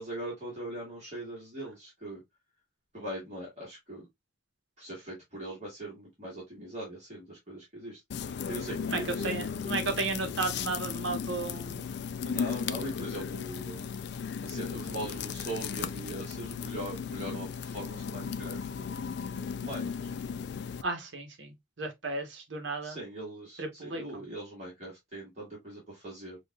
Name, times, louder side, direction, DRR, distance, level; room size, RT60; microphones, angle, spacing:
voice 1, 0.0-2.2 2.9-4.0 4.8-8.0 8.5-9.3 12.2-13.9 14.4-20.1 22.8-26.4, right 1 dB, 35° right, 1.7 m, -41 dB
sound 1, 8.1-20.8, left 6 dB, 55° left, 0.3 m, -36 dB
voice 2, 8.9-11.9 20.8-23.0 23.6-24.2, right 3 dB, 65° right, 1.1 m, -34 dB
5.2 x 2.5 x 2.3 m
head